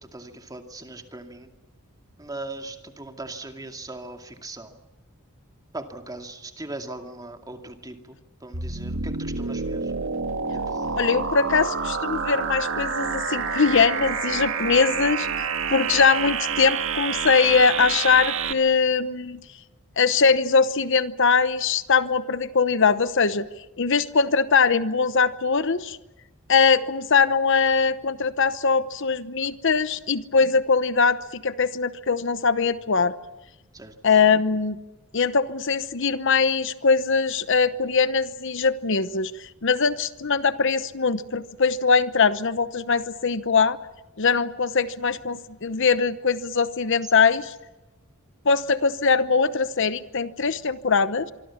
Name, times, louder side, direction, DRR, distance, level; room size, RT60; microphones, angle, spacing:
voice 1, 0.0-1.5 2.2-4.8 5.7-9.9 10.5-11.1 15.9-16.0 33.7-34.0, right 2 dB, 15° right, 5 dB, 2.4 m, -39 dB
sound 1, 8.5-18.5, right 5 dB, 65° right, 1.9 m, -28 dB
voice 2, 11.0-15.5 15.7-19.4 20.0-23.5 23.8-26.0 26.5-33.1 34.0-34.8 35.1-43.8 44.2-47.5 48.4-51.3, left 5 dB, 60° left, 14 dB, 0.9 m, -21 dB
25.5 x 24.5 x 7.3 m, 1.0 s
head